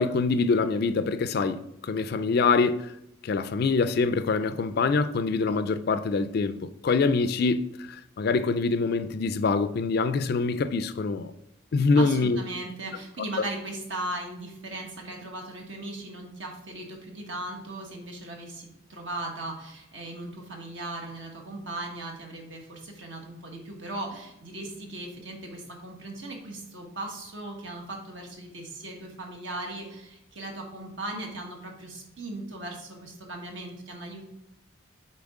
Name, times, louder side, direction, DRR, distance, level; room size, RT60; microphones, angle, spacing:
voice 1, 0.0-2.9 3.2-11.3 11.7-12.4, left 4 dB, 50° left, 0.4 m, -25 dB
voice 2, 11.9-34.2, right 2 dB, 65° right, 1.4 m, -38 dB
7.0 x 4.5 x 3.7 m
head